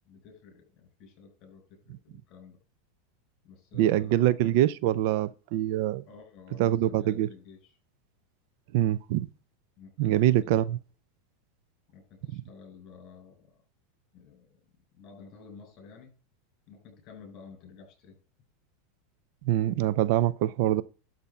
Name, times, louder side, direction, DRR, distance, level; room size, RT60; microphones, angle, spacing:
voice 1, 0.0-2.6 3.4-4.3 6.1-7.8 9.8-10.5 11.9-13.6 14.1-14.6 14.9-16.1 16.7-18.2, left 5 dB, 40° left, 6.4 m, -51 dB
voice 2, 3.8-6.1 6.6-7.3 8.7-9.3 10.0-10.8 19.4-20.8, right 13 dB, 60° right, 0.6 m, -24 dB
12.0 x 4.1 x 7.0 m
supercardioid pair, 140°, 0 cm